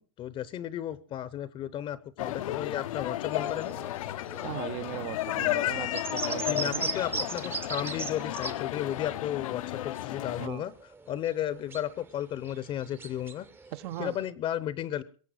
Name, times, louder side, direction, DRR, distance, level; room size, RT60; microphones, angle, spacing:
voice 1, 0.0-3.7 6.5-10.7 11.1-13.5 14.0-15.0, left 11 dB, 30° left, 18 dB, 0.7 m, -34 dB
sound 1, 2.2-10.5, left 15 dB, 80° left, 0.7 m, -33 dB
sound 2, 3.3-8.8 9.0-14.3, right 3 dB, 10° right, 0.7 m, -39 dB
voice 2, 4.4-6.9 10.4-10.7 13.7-14.2, right 15 dB, 50° right, 13 dB, 0.7 m, -38 dB
22.0 x 7.6 x 6.2 m, 0.41 s
supercardioid pair, 135°, 17 cm